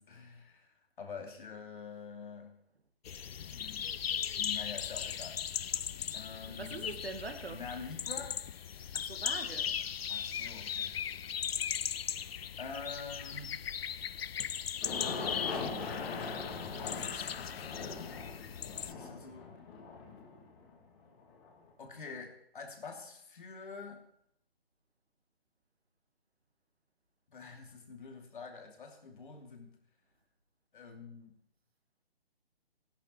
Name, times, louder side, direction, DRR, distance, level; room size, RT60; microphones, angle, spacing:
voice 1, 0.0-2.6 3.5-3.9 4.4-5.4 6.1-7.0 7.5-8.4 10.1-11.0 12.6-13.7 16.6-18.4 18.8-19.5 21.8-24.0 27.3-29.8 30.7-31.4, left 5 dB, 55° left, 2.7 m, -46 dB
sound 1, 3.1-18.9, left 8 dB, 70° left, 0.5 m, -38 dB
voice 2, 6.5-7.6 8.9-9.8, right 3 dB, 75° right, 2.1 m, -43 dB
Aircraft, 14.8-21.5, left 4 dB, 20° left, 2.0 m, -41 dB
15.5 x 11.0 x 4.4 m
figure-of-eight pair, 145°, 31 cm